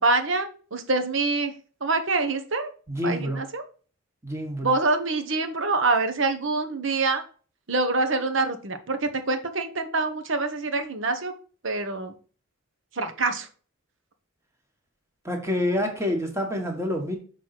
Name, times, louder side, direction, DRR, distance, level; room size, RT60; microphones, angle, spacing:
voice 1, 0.0-1.5 1.8-2.7 3.0-3.6 4.6-7.2 7.7-11.3 11.6-12.1 12.9-13.5, right 3 dB, 65° right, 8 dB, 1.1 m, -25 dB
voice 2, 2.9-3.4 4.2-4.7 15.2-17.2, left 1 dB, 15° right, 2 dB, 1.5 m, -27 dB
6.4 x 4.0 x 5.8 m, 0.40 s
head